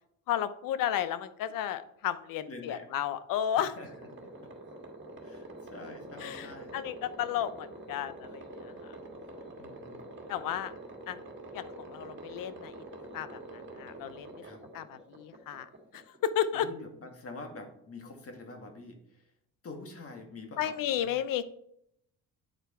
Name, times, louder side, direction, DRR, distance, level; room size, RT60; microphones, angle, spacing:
voice 1, 0.3-3.7 6.2-9.0 10.3-10.7 11.1-11.2 11.5-12.7 13.1-14.3 14.7-16.7 20.6-21.4, left 10 dB, 75° left, 14 dB, 0.7 m, -33 dB
voice 2, 2.5-2.9 3.6-3.9 4.2-4.3 5.2-6.7 9.6-10.0 14.4-14.6 16.5-19.0 19.6-21.1, left 3 dB, 45° left, 4 dB, 1.9 m, -46 dB
sound 1, 3.8-16.5, right 1 dB, 35° right, 1.8 m, -46 dB
9.1 x 4.6 x 4.4 m, 0.72 s
cardioid pair, 85°, 34 cm